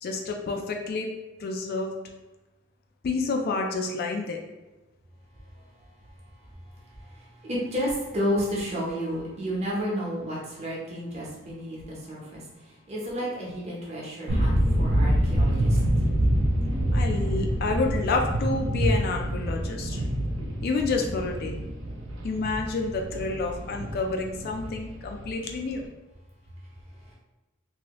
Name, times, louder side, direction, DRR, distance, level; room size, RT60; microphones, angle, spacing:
voice 1, 0.0-1.1 1.4-1.9 3.0-4.4 13.2-13.3 16.9-20.1 20.4-21.6 22.2-25.8, left 3 dB, 50° left, 2 dB, 0.3 m, -29 dB
voice 2, 7.5-12.4 12.9-15.8, equal, 35° right, -5 dB, 0.9 m, -31 dB
sound 1, 14.3-25.8, equal, 70° right, 0.6 m, -26 dB
2.8 x 2.7 x 3.0 m, 1.1 s
head